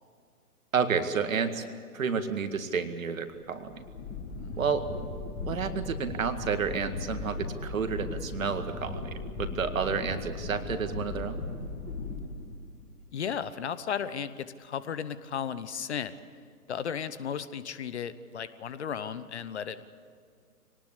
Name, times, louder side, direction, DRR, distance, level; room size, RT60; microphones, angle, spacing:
voice 1, 0.7-1.6 1.9-3.8 4.6-4.9 5.5-11.5, right 6 dB, 55° right, 8 dB, 2.1 m, -30 dB
sound 1, 3.4-12.9, left 3 dB, 15° left, 2.7 m, -37 dB
voice 2, 13.1-16.1 16.7-19.9, left 7 dB, 45° left, 15 dB, 1.0 m, -35 dB
24.0 x 19.0 x 8.4 m, 2.2 s
figure-of-eight pair, 130°, 47 cm